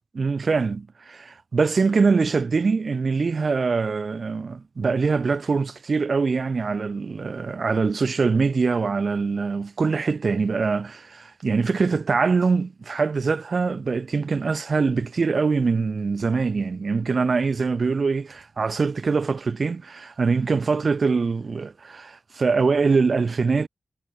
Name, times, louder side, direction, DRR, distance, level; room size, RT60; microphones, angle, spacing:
voice 1, 0.1-23.7, right 4 dB, 70° right, 6.3 m, -23 dB
cardioid pair, 60°, 0 cm